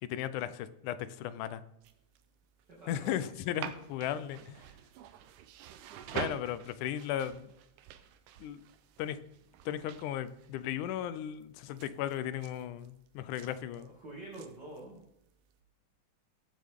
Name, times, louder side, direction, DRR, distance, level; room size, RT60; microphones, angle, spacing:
voice 1, 0.0-1.6 2.9-4.6 6.1-7.5 8.4-8.6 9.0-9.2 9.7-13.9, left 11 dB, 85° left, 14 dB, 2.2 m, -36 dB
sound 1, 1.8-15.6, right 10 dB, 90° right, 2.3 m, -48 dB
voice 2, 2.7-3.3 13.6-15.0, right 2 dB, 35° right, -6 dB, 2.9 m, -47 dB
19.0 x 7.6 x 3.7 m, 0.85 s
omnidirectional pair, 3.5 m